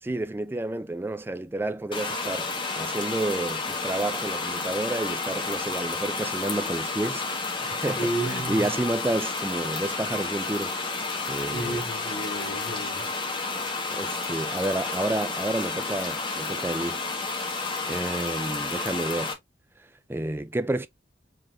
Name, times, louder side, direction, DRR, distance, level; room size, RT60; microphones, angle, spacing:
voice 1, 0.0-7.3 7.5-10.8 11.3-11.8 13.9-17.0 17.5-19.3 20.1-20.9, right 2 dB, 10° right, 0.3 m, -30 dB
sound 1, 1.9-19.3, left 3 dB, 25° left, 1.1 m, -31 dB
voice 2, 8.0-8.7 11.5-13.1, right 1 dB, 60° left, 2.1 m, -32 dB
4.7 x 3.7 x 2.3 m
head